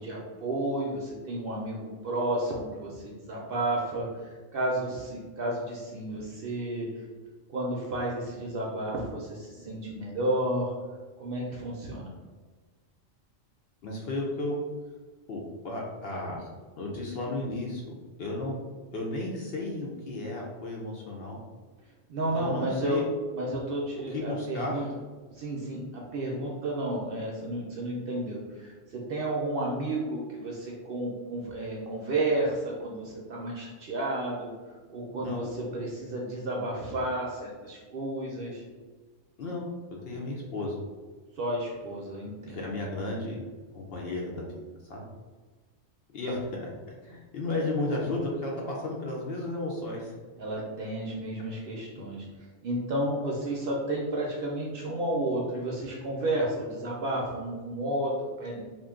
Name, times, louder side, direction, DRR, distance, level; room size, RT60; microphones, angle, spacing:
voice 1, 0.0-6.9 7.5-10.7 11.2-12.1 22.1-23.0 23.3-24.8 25.3-34.5 34.9-38.6 41.4-42.7 50.4-58.6, right 1 dB, 60° right, -3 dB, 0.6 m, -32 dB
voice 2, 13.8-14.6 15.3-16.5 16.8-17.8 18.2-18.6 18.9-21.4 22.3-23.1 24.1-24.9 35.2-35.5 39.4-39.7 40.0-40.7 42.5-43.4 43.7-45.0 46.1-46.7 47.0-50.1, left 2 dB, 65° left, -2 dB, 0.7 m, -33 dB
2.4 x 2.2 x 3.5 m, 1.4 s
omnidirectional pair, 1.3 m